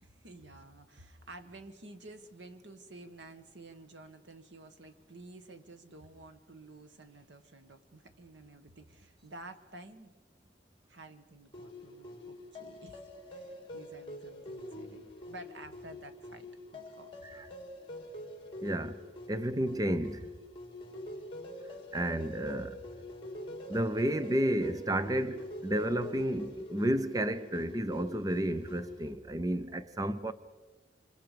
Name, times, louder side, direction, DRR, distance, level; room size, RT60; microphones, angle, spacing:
voice 1, 0.0-10.1 10.9-13.0 13.3-17.1, right 2 dB, 85° right, 1.7 m, -51 dB
sound 1, 11.5-29.1, left 1 dB, 30° left, 3.1 m, -45 dB
voice 2, 18.6-19.0 19.3-20.3 21.9-22.8 23.7-30.3, right 1 dB, 20° right, 0.6 m, -31 dB
27.5 x 26.5 x 5.1 m
head